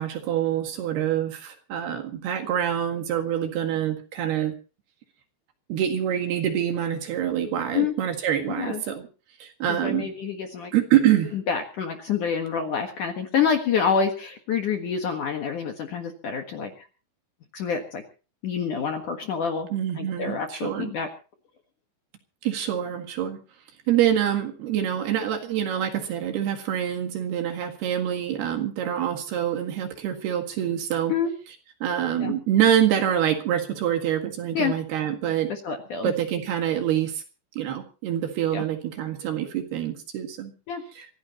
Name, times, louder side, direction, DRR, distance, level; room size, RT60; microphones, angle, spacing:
voice 1, 0.0-4.5 5.7-9.1 9.4-10.1 10.7-11.4 19.7-20.9 22.4-23.4 23.9-31.1 31.8-35.5 36.0-37.2 37.6-40.5 41.0-41.1, right 10 dB, 65° right, 5 dB, 3.7 m, -25 dB
voice 2, 9.8-10.7 11.3-16.9 17.5-18.0 18.4-19.7 20.0-21.1 31.1-31.3 32.2-32.3 34.5-34.8 35.5-36.1 38.5-38.6 40.7-40.8, left 6 dB, 60° left, 4 dB, 2.4 m, -27 dB
25.0 x 16.0 x 3.0 m, 0.35 s
omnidirectional pair, 5.4 m